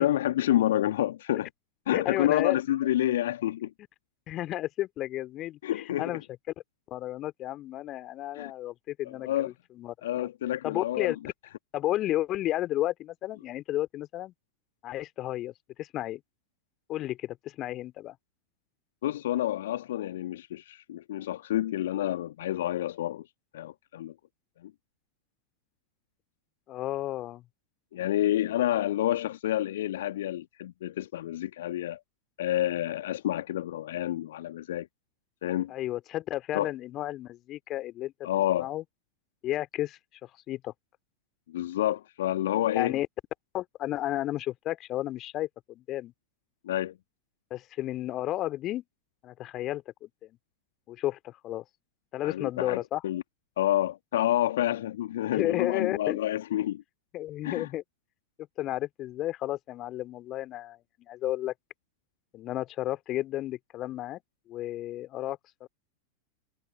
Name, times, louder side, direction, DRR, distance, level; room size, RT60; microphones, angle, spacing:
voice 1, 0.0-1.5 1.9-3.7 5.6-6.2 8.4-8.5 9.1-9.5 10.0-11.1 19.0-23.3 23.5-24.1 24.6-24.7 27.9-32.0 32.4-34.9 35.4-35.7 36.5-36.7 38.2-38.7 41.5-43.0 46.6-46.9 52.2-53.2 53.6-56.8 57.4-57.7, left 13 dB, 60° left, 1.7 m, -28 dB
voice 2, 1.9-2.6 4.3-6.2 6.9-10.3 10.6-11.2 11.7-14.3 14.8-16.2 16.9-18.2 26.7-27.4 35.7-38.1 38.6-38.8 39.4-40.0 40.5-40.7 42.7-43.1 43.5-46.1 47.5-48.8 49.2-50.4 50.9-51.6 52.1-53.0 55.3-56.2 57.1-57.8 58.6-61.5 62.3-64.2 64.5-65.7, left 14 dB, 35° left, 2.5 m, -32 dB
figure-of-eight pair, 90°, 0 cm